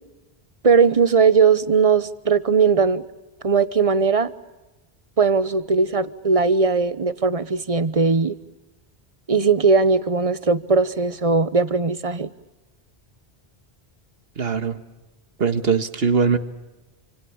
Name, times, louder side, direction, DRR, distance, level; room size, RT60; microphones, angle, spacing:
voice 1, 0.6-3.0 3.4-4.3 5.2-8.4 9.3-12.3, right 5 dB, 35° right, 15 dB, 1.1 m, -19 dB
voice 2, 14.4-14.8 15.4-16.4, right 5 dB, 70° right, 11 dB, 1.8 m, -21 dB
28.5 x 26.5 x 7.2 m, 1.0 s
omnidirectional pair, 1.1 m